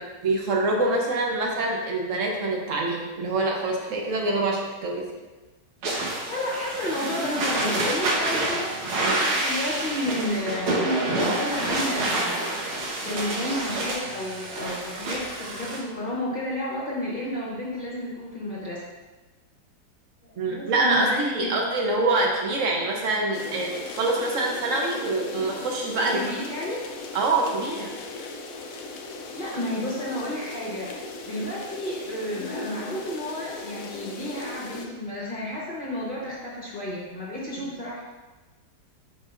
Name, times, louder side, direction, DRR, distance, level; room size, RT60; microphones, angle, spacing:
voice 1, 0.0-5.1 9.0-9.2 20.4-26.2 27.1-27.9 37.6-37.7, right 2 dB, 65° right, 0 dB, 0.8 m, -25 dB
sound 1, 5.8-15.8, right 2 dB, 80° right, 1.9 m, -28 dB
voice 2, 6.3-10.7 11.2-12.4 13.0-18.8 20.2-21.5 26.0-26.8 29.1-30.9 31.2-38.0, left 1 dB, 40° left, -5 dB, 0.8 m, -31 dB
sound 2, 23.3-34.9, left 3 dB, 85° left, 0.7 m, -38 dB
9.9 x 3.9 x 2.5 m, 1.2 s
omnidirectional pair, 2.2 m